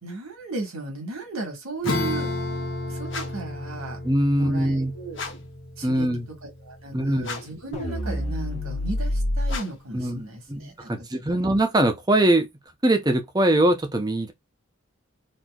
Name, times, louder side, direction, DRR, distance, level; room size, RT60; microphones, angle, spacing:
voice 1, 0.0-2.3 2.9-4.0 4.3-5.2 5.8-6.1 6.4-11.4, right 3 dB, 85° right, 1.6 m, -35 dB
Acoustic guitar / Strum, 1.8-7.8, left 2 dB, 85° left, 1.1 m, -33 dB
sound 1, 3.1-3.6 5.1-5.6 7.2-7.7 9.4-9.9, left 4 dB, 60° left, 1.1 m, -37 dB
voice 2, 4.0-4.9 5.8-6.3 6.9-7.3 9.9-10.2 10.5-12.5 12.8-14.3, right 1 dB, 20° right, 0.6 m, -22 dB
sound 2, 7.7-9.6, left 1 dB, 30° left, 1.0 m, -27 dB
4.1 x 2.7 x 2.3 m
head